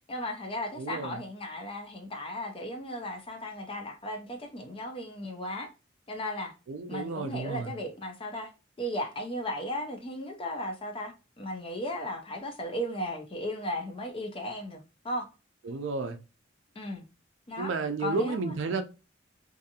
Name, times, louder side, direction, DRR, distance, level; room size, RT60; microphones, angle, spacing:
voice 1, 0.1-5.7 6.1-6.5 6.9-8.5 8.8-15.3 16.8-17.0 17.5-17.7 18.0-18.6, left 1 dB, 25° left, 0.4 m, -36 dB
voice 2, 0.7-1.2 6.7-7.7 15.6-16.2 17.6-18.8, right 4 dB, 75° right, 0.4 m, -32 dB
2.6 x 2.4 x 2.7 m
head